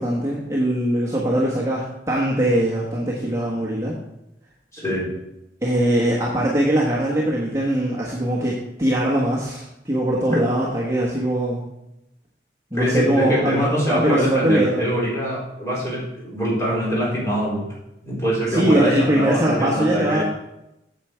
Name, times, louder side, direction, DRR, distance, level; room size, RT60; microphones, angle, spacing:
voice 1, 0.0-4.0 5.6-11.6 12.7-14.9 18.5-20.2, right 1 dB, 15° right, -5 dB, 1.3 m, -21 dB
voice 2, 4.7-5.1 12.7-17.6 18.0-20.2, equal, 15° left, -7 dB, 3.9 m, -24 dB
8.6 x 7.4 x 4.5 m, 0.88 s
head